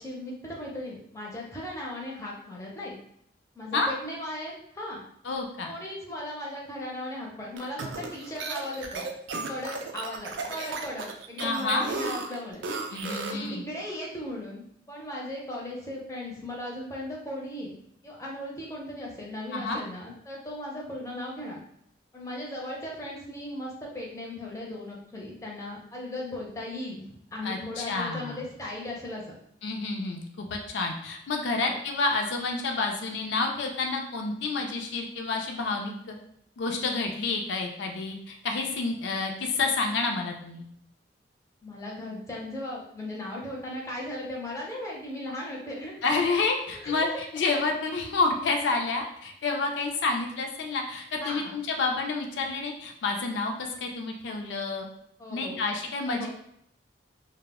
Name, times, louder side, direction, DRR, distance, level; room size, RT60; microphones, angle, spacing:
voice 1, 0.0-3.0 3.5-5.0 5.6-9.1 9.5-12.7 12.9-17.8 18.0-21.6 22.1-29.4 31.6-31.8 41.6-46.4 46.7-47.2 51.2-51.6 55.2-55.6 56.1-56.3, left 1 dB, 15° left, -3 dB, 0.5 m, -37 dB
voice 2, 5.2-5.7 11.4-11.9 12.9-13.6 19.5-19.8 27.4-28.4 29.6-36.1 36.6-40.6 46.0-54.9 55.3-56.3, left 3 dB, 75° left, 2 dB, 0.4 m, -29 dB
sound 1, 7.6-13.5, right 3 dB, 80° right, 0.4 m, -35 dB
2.0 x 2.0 x 3.4 m, 0.71 s
head